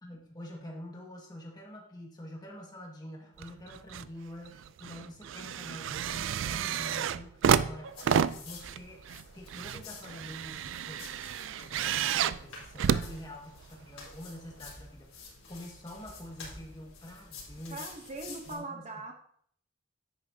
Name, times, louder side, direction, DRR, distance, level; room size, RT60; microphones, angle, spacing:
voice 1, 0.0-8.0 8.3-9.0 9.3-11.3 11.6-17.9 18.5-18.9, left 1 dB, 20° left, 0 dB, 1.7 m, -46 dB
sound 1, 3.4-4.1 4.5-13.8 14.6-14.7, right 8 dB, 65° right, 0.3 m, -31 dB
sound 2, 7.9-18.5, left 4 dB, 85° left, 3.9 m, -50 dB
voice 2, 17.7-19.1, right 2 dB, 35° right, 4 dB, 0.9 m, -40 dB
10.5 x 8.6 x 2.7 m, 0.63 s
head